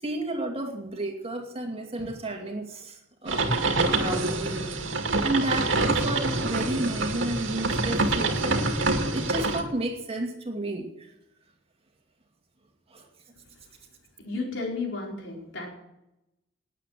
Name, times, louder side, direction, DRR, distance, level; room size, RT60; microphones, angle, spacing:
voice 1, 0.0-2.9 3.2-4.9 5.2-8.8 9.1-10.9 12.9-13.0, right 1 dB, 30° right, 3 dB, 2.4 m, -32 dB
sound 1, 3.3-9.6, right 2 dB, 80° right, 2.2 m, -26 dB
voice 2, 14.2-15.7, left 3 dB, 70° left, -1 dB, 5.1 m, -33 dB
19.5 x 8.5 x 7.6 m, 0.92 s
head